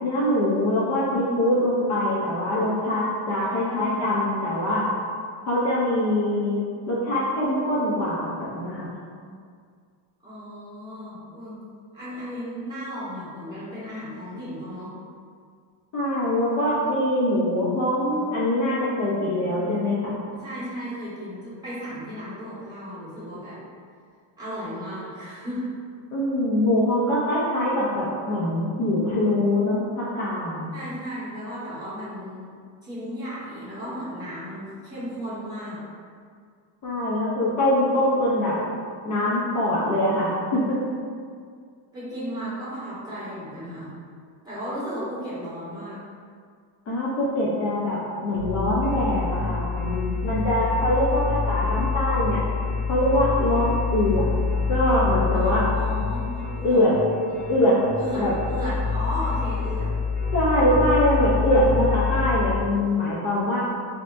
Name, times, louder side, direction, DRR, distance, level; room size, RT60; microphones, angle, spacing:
voice 1, 0.0-4.9 5.5-6.6 6.9-8.9 15.9-20.2 26.1-30.7 36.8-38.6 39.0-40.8 46.9-52.4 52.9-54.3 54.7-55.6 56.6-56.9 57.5-57.7 58.1-58.3 60.3-63.6, left 1 dB, 40° left, -7 dB, 0.7 m, -23 dB
voice 2, 3.6-4.0 10.2-11.6 11.9-14.9 20.3-23.6 24.4-25.7 30.7-32.5 32.8-35.8 41.9-43.9 44.4-46.0 55.3-56.8 57.3-59.9, equal, 10° right, -12 dB, 1.4 m, -34 dB
sound 1, 48.3-62.6, left 5 dB, 20° left, 1.0 m, -27 dB
5.4 x 2.9 x 2.6 m, 2.1 s
cardioid pair, 175°, 44 cm